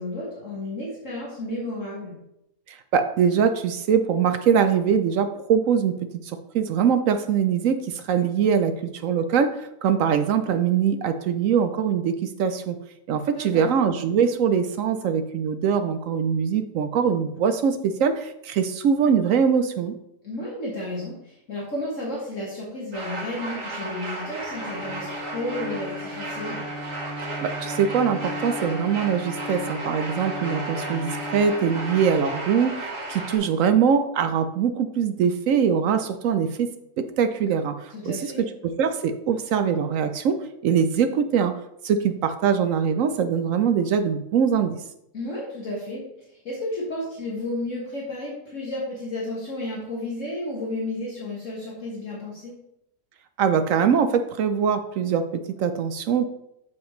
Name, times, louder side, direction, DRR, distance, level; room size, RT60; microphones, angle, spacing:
voice 1, 0.0-2.2 13.3-13.7 20.2-26.6 37.9-38.5 45.1-46.0 46.3-52.6, left 1 dB, 50° left, -5 dB, 1.9 m, -32 dB
voice 2, 2.7-5.9 6.3-8.7 9.0-12.8 13.1-20.0 27.4-32.8 33.1-36.7 37.0-37.8 38.0-38.3 38.6-40.4 40.6-41.5 41.8-44.8 53.4-56.3, right 7 dB, 70° right, 9 dB, 0.8 m, -22 dB
sound 1, 22.9-33.4, right 2 dB, 50° right, 2.3 m, -34 dB
Bowed string instrument, 24.3-32.8, left 2 dB, 20° left, 2.2 m, -37 dB
7.4 x 7.0 x 3.1 m, 0.82 s
omnidirectional pair, 1.7 m